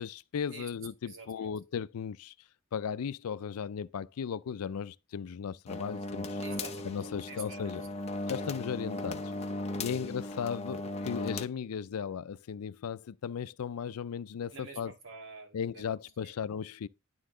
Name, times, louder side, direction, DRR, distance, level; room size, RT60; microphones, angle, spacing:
voice 1, 0.0-2.3 2.7-6.4 6.8-7.8 8.3-9.3 9.8-14.9 15.5-16.9, left 7 dB, 85° left, 0.4 m, -36 dB
voice 2, 1.0-1.5 6.4-7.0 7.3-7.7 9.9-10.1 14.5-15.8 16.2-16.3, right 3 dB, 60° right, 1.9 m, -47 dB
sound 1, 5.7-11.5, left 2 dB, 30° left, 0.7 m, -37 dB
11.0 x 3.8 x 3.7 m
head